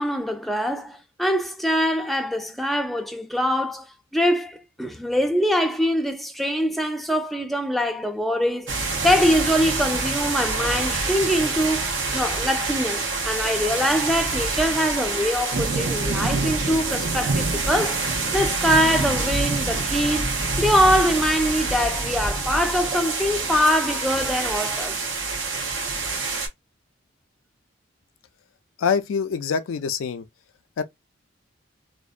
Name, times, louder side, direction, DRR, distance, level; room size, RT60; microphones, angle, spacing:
voice 1, 0.0-3.9 4.1-8.8 9.0-18.0 18.3-25.0, equal, ahead, 0.4 m, -23 dB
sound 1, 8.7-26.5, right 3 dB, 65° right, 0.7 m, -26 dB
voice 2, 28.8-30.2 30.8-30.9, left 6 dB, 90° left, 0.4 m, -25 dB
2.5 x 2.1 x 2.4 m
head